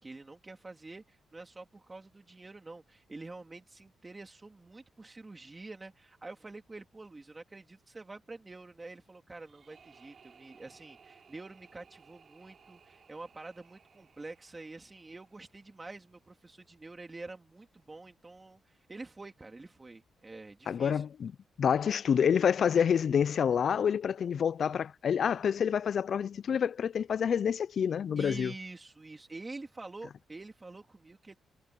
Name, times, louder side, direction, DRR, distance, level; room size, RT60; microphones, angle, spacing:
voice 1, 0.0-21.0 28.2-31.3, right 3 dB, 20° right, 3.2 m, -47 dB
sound 1, 9.4-16.4, right 6 dB, 45° right, 3.9 m, -61 dB
voice 2, 20.7-21.3 21.6-28.5, left 7 dB, 50° left, 0.3 m, -28 dB
wide cardioid pair, 155°, 0 cm